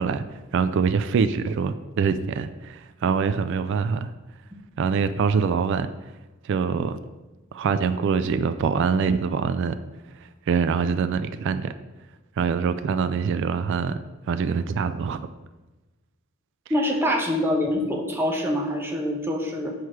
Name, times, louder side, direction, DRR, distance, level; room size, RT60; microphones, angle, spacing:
voice 1, 0.0-4.1 4.8-5.9 6.4-7.0 7.5-9.8 10.5-11.7 12.4-14.0 14.3-15.3, right 5 dB, 60° right, 12 dB, 0.3 m, -24 dB
voice 2, 16.7-19.7, left 1 dB, 10° right, 1 dB, 0.9 m, -25 dB
6.4 x 4.7 x 4.7 m, 1.1 s
head